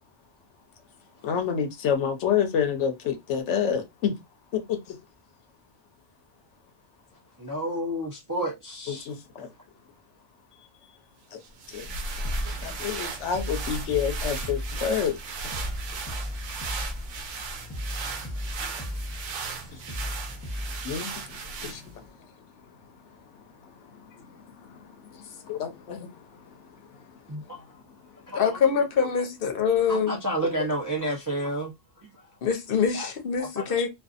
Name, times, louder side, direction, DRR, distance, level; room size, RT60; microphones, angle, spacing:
voice 1, 1.2-4.1 4.5-5.0 8.9-9.5 11.3-11.4 11.7-11.9 12.6-15.2 20.8-21.1 21.6-22.0 24.1-24.8 25.1-26.2, left 8 dB, 80° left, 0.9 m, -28 dB
voice 2, 7.4-9.1 27.3-27.6 28.3-28.6 29.9-31.7 32.9-33.1 33.4-33.6, right 1 dB, 30° right, 0.3 m, -30 dB
sound 1, 11.4-22.1, right 3 dB, 90° right, 1.0 m, -36 dB
sound 2, 12.2-21.2, left 1 dB, 20° left, 0.8 m, -37 dB
voice 3, 28.3-30.2 32.4-33.9, left 6 dB, 60° left, 0.8 m, -24 dB
2.6 x 2.3 x 2.4 m
omnidirectional pair, 1.2 m